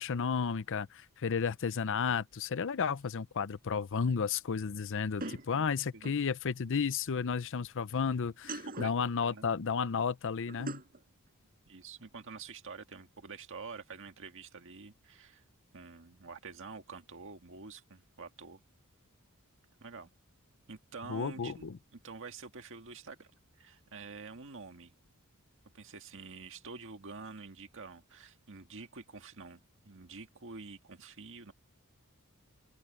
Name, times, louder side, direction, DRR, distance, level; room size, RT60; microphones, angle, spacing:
voice 1, 0.0-10.8 21.1-21.8, left 6 dB, 60° left, 0.6 m, -32 dB
sound 1, 3.0-3.1 5.2-6.3 8.3-9.1 10.5-11.0, right 2 dB, 40° right, 4.9 m, -42 dB
voice 2, 11.7-15.4 15.7-18.6 19.8-20.1 20.7-21.7 21.9-23.3 23.5-24.9 25.7-29.6 29.8-31.5, right 4 dB, 60° right, 1.8 m, -47 dB
open air
head